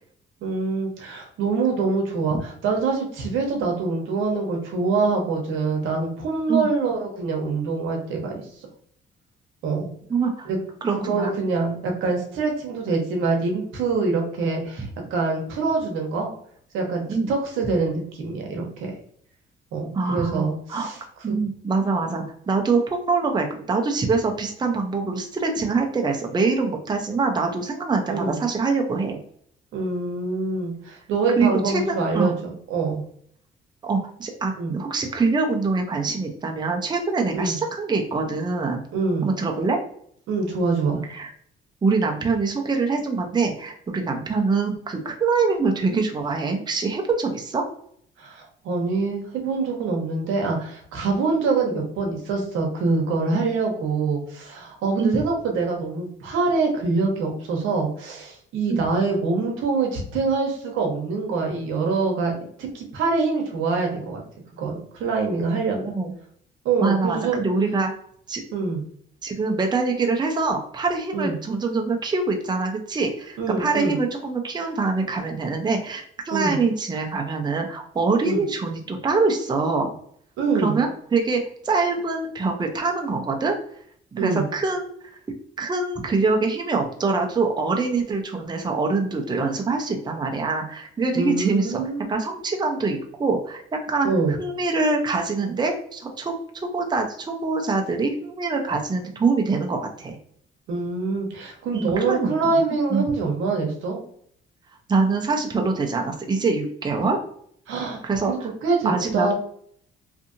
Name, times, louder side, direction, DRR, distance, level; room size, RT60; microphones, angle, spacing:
voice 1, 0.4-8.4 9.6-9.9 10.5-10.6 10.9-16.3 16.7-18.9 19.7-21.0 21.3-21.4 28.1-28.4 29.7-33.0 34.6-34.8 37.3-37.6 38.9-39.3 40.3-41.0 48.2-62.3 62.6-64.2 64.6-65.9 66.6-67.4 68.5-68.8 71.1-71.3 73.4-74.0 76.3-76.6 78.2-78.4 80.4-80.8 84.2-84.5 91.1-92.1 94.0-94.4 100.7-104.0 107.7-109.3, right 4 dB, 85° right, 1 dB, 0.8 m, -25 dB
voice 2, 10.1-10.5 10.8-11.3 17.1-17.3 19.9-20.9 21.2-29.2 31.4-32.4 33.8-38.8 39.2-39.8 41.1-41.3 41.8-47.6 55.0-55.2 58.7-58.8 65.8-66.1 66.8-67.9 68.3-68.4 69.2-79.9 80.5-83.6 84.1-84.9 85.6-91.8 92.1-94.1 94.4-96.3 96.7-100.2 101.7-102.6 102.9-103.1 104.9-107.2 108.0-108.5 108.8-109.3, right 4 dB, 20° right, 2 dB, 0.5 m, -24 dB
2.7 x 2.5 x 2.5 m, 0.65 s
cardioid pair, 90°, 20 cm